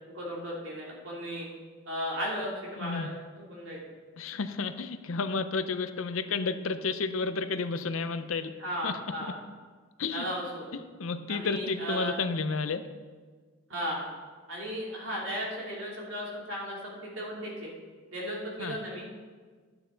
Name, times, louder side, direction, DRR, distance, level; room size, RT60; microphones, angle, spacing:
voice 1, 0.1-1.5 1.9-3.8 8.6-9.4 10.1-10.7 11.3-12.2 13.7-14.1 14.5-17.7 18.1-19.1, equal, 65° right, -4 dB, 3.0 m, -35 dB
voice 2, 2.8-3.1 4.2-8.5 8.8-8.9 10.0-10.2 10.7-12.8 18.6-18.8, left 4 dB, 80° left, 11 dB, 0.6 m, -31 dB
12.5 x 9.0 x 3.9 m, 1.5 s
head